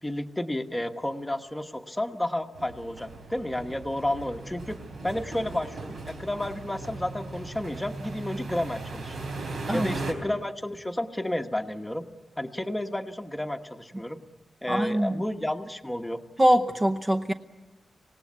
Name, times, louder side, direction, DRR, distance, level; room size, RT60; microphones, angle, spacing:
voice 1, 0.0-9.2 9.7-12.0 12.4-14.2 14.6-16.2, left 1 dB, 10° left, 6 dB, 1.1 m, -31 dB
sound 1, 2.5-10.1, right 3 dB, 85° right, 3.9 m, -38 dB
voice 2, 14.7-15.2 16.4-17.3, equal, 15° right, 4 dB, 0.8 m, -23 dB
26.0 x 18.5 x 9.5 m, 1.2 s
wide cardioid pair, 155°, 0 cm